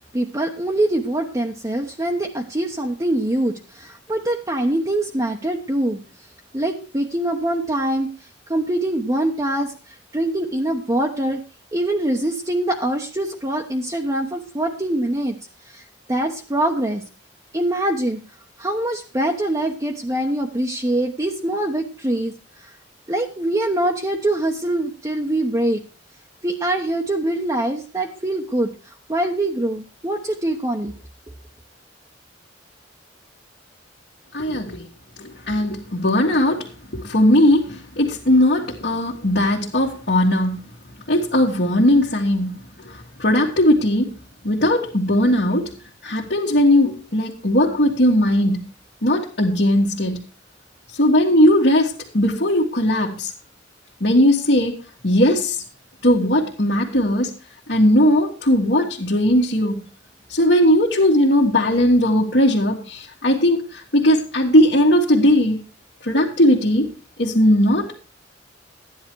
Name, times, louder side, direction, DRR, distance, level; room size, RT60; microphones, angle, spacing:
voice 1, 0.1-6.0 6.5-11.4 11.7-15.4 15.7-15.8 16.1-17.0 17.5-18.2 18.6-22.7 23.1-25.8 26.4-30.9, right 1 dB, 20° right, 1.0 m, -24 dB
voice 2, 34.3-34.9 35.2-40.7 41.1-44.2 44.4-45.7 46.0-48.6 49.0-50.3 51.0-53.3 54.0-55.6 56.0-57.3 57.7-59.9 60.3-65.6 66.0-66.9 67.2-68.0, left 1 dB, 60° left, 1.9 m, -18 dB
13.5 x 10.0 x 4.6 m
head